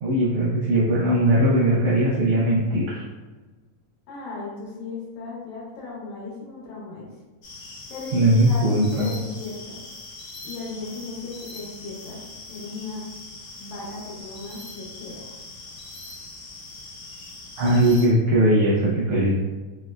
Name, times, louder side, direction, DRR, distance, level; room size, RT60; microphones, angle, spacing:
voice 1, 0.0-3.0 8.1-9.1 17.6-19.3, right 1 dB, 90° right, -5 dB, 1.3 m, -20 dB
voice 2, 4.1-7.1 7.9-9.8 10.4-12.2 12.5-13.1 13.6-15.3, left 3 dB, 75° left, -5 dB, 2.4 m, -36 dB
sound 1, 7.4-18.1, left 2 dB, 60° left, 1.4 m, -41 dB
5.1 x 2.1 x 2.2 m, 1.3 s
omnidirectional pair, 3.4 m